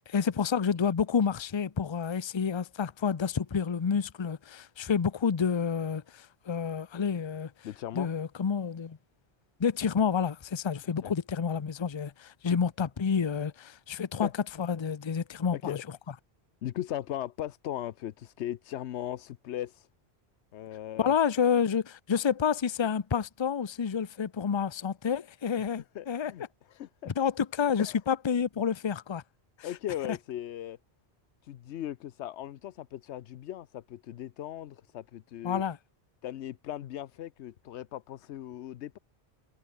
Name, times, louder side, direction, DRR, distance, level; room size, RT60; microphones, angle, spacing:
voice 1, 0.1-7.5 7.9-9.0 9.6-14.3 14.6-15.8 21.0-26.3 27.1-29.2 29.6-29.7 30.1-30.2 35.4-35.8, left 6 dB, 30° left, 0.6 m, -29 dB
voice 2, 7.6-8.1 11.0-11.1 14.2-14.3 15.5-15.8 16.6-19.9 20.5-21.1 25.9-26.4 26.7-27.1 27.8-27.9 29.6-30.8 31.4-35.6 36.2-39.0, left 12 dB, 85° left, 0.9 m, -38 dB
omnidirectional pair, 1.1 m